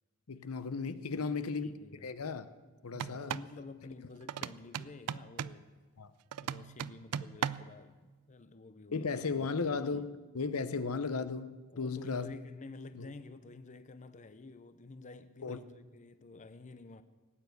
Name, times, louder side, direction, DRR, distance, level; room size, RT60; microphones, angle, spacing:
voice 1, 0.3-1.7 2.0-2.5 2.8-3.4 6.0-6.1 8.9-12.3 12.9-13.1 15.4-15.6, left 4 dB, 70° left, 0.7 m, -35 dB
voice 2, 1.1-2.1 3.1-5.7 6.4-9.1 9.6-10.1 11.7-17.0, left 3 dB, 35° left, 0.6 m, -50 dB
Darbuka Drum Percussion, 2.9-3.5 4.3-5.6 6.3-7.8, right 8 dB, 80° right, 0.4 m, -38 dB
18.0 x 9.4 x 8.0 m
head